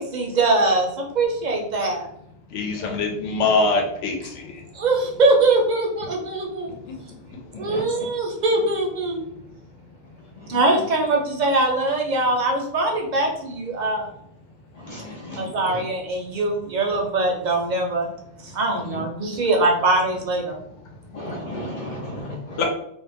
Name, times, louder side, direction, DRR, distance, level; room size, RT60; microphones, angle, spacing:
voice 1, 0.0-2.0 4.7-6.7 7.6-9.2 10.5-14.1 15.4-18.1 18.4-20.6, right 2 dB, 60° right, 1 dB, 0.5 m, -22 dB
voice 2, 2.5-4.1 4.4-4.5 22.6-22.7, left 3 dB, 90° left, 1 dB, 0.9 m, -22 dB
voice 3, 14.9-15.4 21.1-22.6, left 1 dB, 60° left, -3 dB, 0.4 m, -33 dB
2.4 x 2.0 x 3.3 m, 0.74 s
omnidirectional pair, 1.2 m